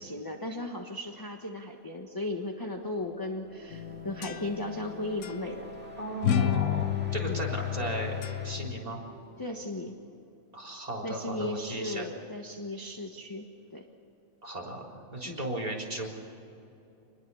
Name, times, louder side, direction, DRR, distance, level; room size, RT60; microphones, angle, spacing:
voice 1, 0.0-5.7 7.3-7.4 9.4-10.0 11.0-13.8 15.2-15.4, left 2 dB, 15° left, 3 dB, 1.2 m, -36 dB
sound 1, 2.6-10.3, right 1 dB, 5° right, 2.0 m, -47 dB
sound 2, 3.7-4.9 5.2-5.4 6.2-8.8, left 10 dB, 80° left, 1.2 m, -30 dB
voice 2, 6.0-9.0 10.5-12.1 14.4-14.9 15.1-16.1, right 1 dB, 25° right, 1 dB, 4.0 m, -35 dB
26.5 x 21.0 x 7.1 m, 2.8 s
omnidirectional pair, 1.5 m